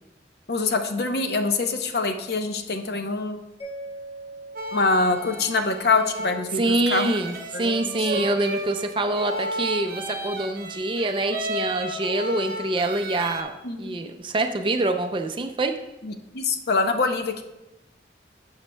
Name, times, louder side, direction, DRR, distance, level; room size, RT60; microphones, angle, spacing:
voice 1, 0.5-3.4 4.7-7.1 7.5-8.2 13.6-13.9 16.0-17.4, left 3 dB, 65° left, 6 dB, 0.7 m, -25 dB
Mallet percussion, 3.6-6.6, right 2 dB, 35° left, 1.5 m, -42 dB
sound 1, 4.6-13.4, right 1 dB, 55° right, 0.9 m, -33 dB
voice 2, 6.6-13.5 13.8-15.7, right 2 dB, 30° right, 6 dB, 0.4 m, -25 dB
11.5 x 7.2 x 2.2 m, 0.99 s
head